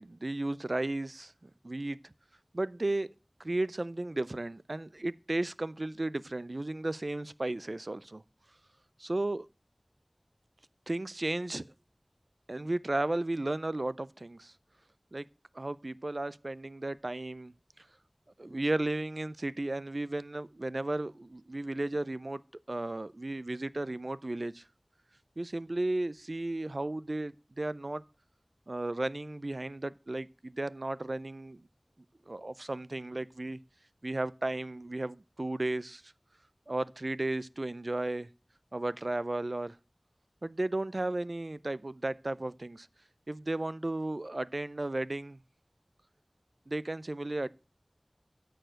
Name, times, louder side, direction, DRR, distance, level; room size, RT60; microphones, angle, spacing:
voice 1, 0.0-2.1 2.5-3.1 3.4-8.2 9.0-9.5 10.9-11.7 12.5-14.5 15.1-15.2 15.5-17.8 18.4-22.4 22.7-24.6 25.4-28.0 28.7-31.6 32.3-33.6 34.0-36.1 36.7-38.3 38.7-39.8 40.4-42.9 43.3-45.4 46.7-47.5, right 2 dB, 70° right, 0.4 m, -34 dB
13.0 x 4.6 x 6.3 m
wide cardioid pair, 40°, 0 cm